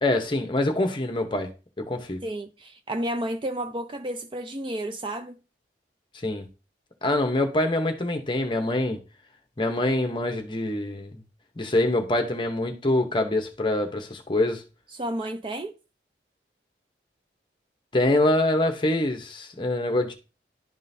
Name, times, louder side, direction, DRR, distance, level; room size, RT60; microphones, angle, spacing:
voice 1, 0.0-1.5 1.8-2.2 6.2-6.5 7.0-9.0 9.6-11.2 11.6-14.6 17.9-20.1, left 1 dB, 25° left, 0.8 m, -25 dB
voice 2, 2.2-5.4 14.9-15.8, right 1 dB, 30° right, 0.4 m, -31 dB
11.0 x 3.7 x 2.7 m
head